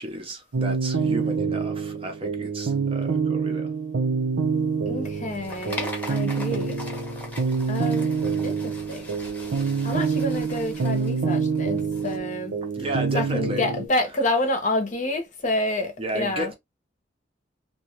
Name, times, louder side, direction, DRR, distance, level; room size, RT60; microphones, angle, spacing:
voice 1, 0.0-3.7 12.7-13.7 16.0-16.5, right 1 dB, 30° right, 0.6 m, -32 dB
sound 1, 0.5-13.9, right 5 dB, 90° right, 0.7 m, -26 dB
voice 2, 4.9-6.8 7.7-8.2 8.4-9.1 9.8-12.5 13.1-16.5, left 1 dB, 40° left, 0.8 m, -28 dB
sound 2, 5.0-12.2, left 1 dB, 10° left, 0.8 m, -40 dB
2.7 x 2.3 x 3.0 m
head